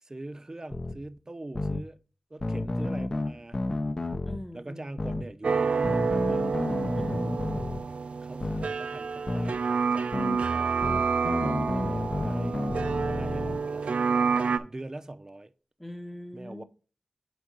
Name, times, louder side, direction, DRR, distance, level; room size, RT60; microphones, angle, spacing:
voice 1, 0.0-2.0 2.3-3.6 4.5-6.5 8.2-10.1 10.5-13.9 14.4-15.5 16.3-16.6, right 2 dB, 30° right, 0.5 m, -43 dB
sound 1, 0.7-0.9 1.5-1.8 2.4-4.4 5.0-5.2 5.8-7.8 8.4-8.7 9.3-9.5 10.1-10.4 10.8-13.6, left 2 dB, 40° left, 0.6 m, -31 dB
voice 2, 4.2-5.0 6.9-7.5 15.8-16.6, left 1 dB, 5° left, 0.7 m, -42 dB
sound 2, 5.4-14.6, right 5 dB, 85° right, 0.4 m, -28 dB
5.1 x 4.6 x 6.0 m
wide cardioid pair, 85°, 2 cm